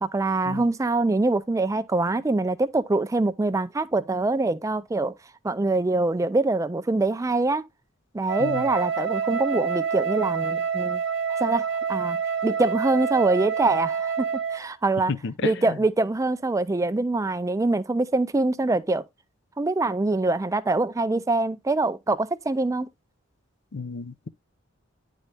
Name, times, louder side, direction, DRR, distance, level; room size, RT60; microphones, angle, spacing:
voice 1, 0.0-5.1 5.4-7.7 8.1-11.0 11.3-12.2 12.4-15.1 15.4-19.0 19.6-22.9, right 2 dB, 15° right, 0.4 m, -24 dB
Wind instrument woodwind instrument, 8.3-14.7, right 6 dB, 65° right, 0.8 m, -27 dB
voice 2, 15.1-15.5 23.7-24.3, left 4 dB, 60° left, 0.6 m, -31 dB
9.9 x 4.0 x 3.4 m
head